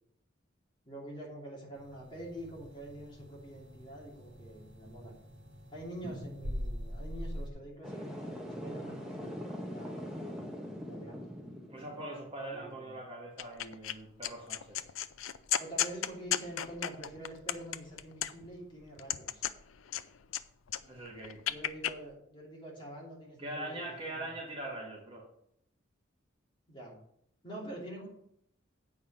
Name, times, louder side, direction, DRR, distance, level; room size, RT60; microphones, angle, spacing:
voice 1, 0.9-5.1 5.7-9.4 9.7-10.5 10.9-11.3 12.5-12.9 15.6-19.4 21.5-24.3 26.7-27.0 27.4-28.1, right 1 dB, 25° left, -4 dB, 2.8 m, -46 dB
sound 1, 1.7-7.5, equal, 60° right, 1.9 m, -43 dB
sound 2, 7.8-12.1, equal, 5° right, 1.5 m, -42 dB
voice 2, 11.7-14.8 20.8-21.4 23.4-25.3, right 1 dB, 25° right, -1 dB, 1.9 m, -42 dB
sound 3, 13.4-13.9 14.2-18.6 19.0-20.4 20.7-21.9, left 11 dB, 85° left, 0.5 m, -34 dB
8.4 x 5.5 x 6.5 m, 0.70 s
head